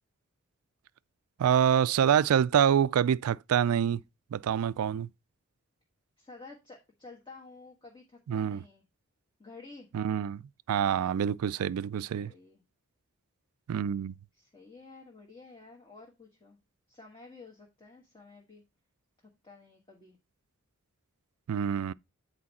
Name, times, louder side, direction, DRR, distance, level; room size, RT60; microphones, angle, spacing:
voice 1, 1.4-4.0 4.3-5.1 8.3-8.6 9.9-10.4 10.7-12.3 13.7-14.2 21.5-21.9, right 8 dB, 85° right, 0.3 m, -26 dB
voice 2, 6.2-8.8 9.4-9.9 12.1-12.6 14.4-16.6 16.9-18.6 19.2-20.2, left 3 dB, 20° left, 1.3 m, -51 dB
8.7 x 4.5 x 4.1 m
head